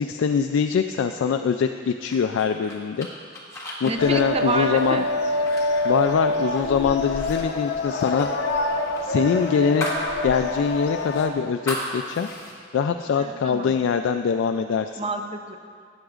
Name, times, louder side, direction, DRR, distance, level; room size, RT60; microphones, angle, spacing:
voice 1, 0.0-3.1 3.8-5.0 5.8-8.3 9.0-9.9 10.2-12.3 12.7-14.9, left 6 dB, 85° left, 6 dB, 0.3 m, -23 dB
sound 1, 2.1-6.7 7.0-7.4 7.6-10.1 10.4-10.5 11.0-12.5, equal, 15° left, 1.3 m, -36 dB
voice 2, 3.8-5.1 13.2-13.7 15.0-15.6, right 3 dB, 30° right, 5 dB, 0.5 m, -29 dB
sound 2, 4.0-11.3, left 2 dB, 55° left, 0.8 m, -26 dB
13.0 x 8.8 x 2.4 m, 2.1 s
head